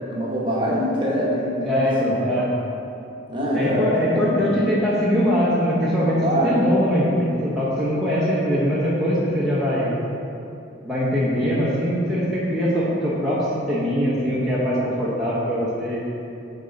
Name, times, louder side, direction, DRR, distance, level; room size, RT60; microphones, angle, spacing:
voice 1, 0.1-2.1 3.3-4.5 6.2-6.6, equal, 25° right, -5 dB, 1.1 m, -24 dB
voice 2, 1.6-2.5 3.5-9.9 10.8-16.0, equal, ahead, -10 dB, 0.8 m, -22 dB
9.0 x 4.1 x 3.8 m, 2.7 s
head